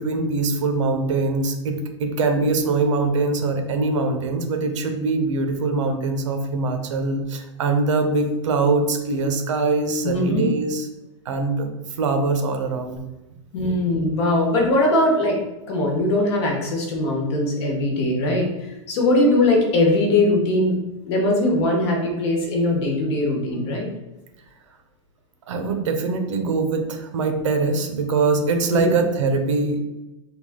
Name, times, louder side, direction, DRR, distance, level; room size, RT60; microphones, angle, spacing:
voice 1, 0.0-10.9 11.3-11.7 12.0-13.0 13.6-13.7 25.5-29.8, right 3 dB, 75° right, 6 dB, 0.7 m, -23 dB
voice 2, 10.0-10.5 13.5-15.4 15.7-18.5 18.9-20.8 21.0-23.9 28.7-29.0, left 1 dB, 55° left, 0 dB, 1.1 m, -20 dB
3.5 x 2.4 x 3.6 m, 1.0 s
supercardioid pair, 160°, 16 cm